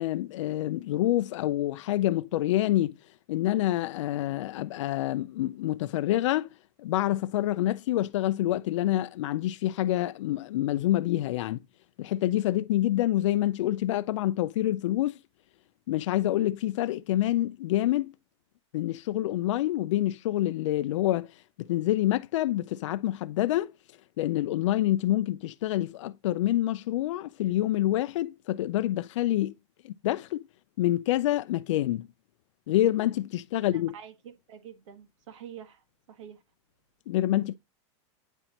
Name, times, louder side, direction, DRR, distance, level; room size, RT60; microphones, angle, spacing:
voice 1, 0.0-3.0 3.3-6.5 6.8-11.6 12.0-15.2 15.9-18.1 18.7-21.3 21.6-23.7 24.2-29.5 29.8-30.4 30.8-32.1 32.7-33.9 37.1-37.6, left 14 dB, 85° left, 0.4 m, -27 dB
voice 2, 33.6-36.4, right 9 dB, 85° right, 1.5 m, -47 dB
9.0 x 4.2 x 2.9 m
supercardioid pair, 175°, 16 cm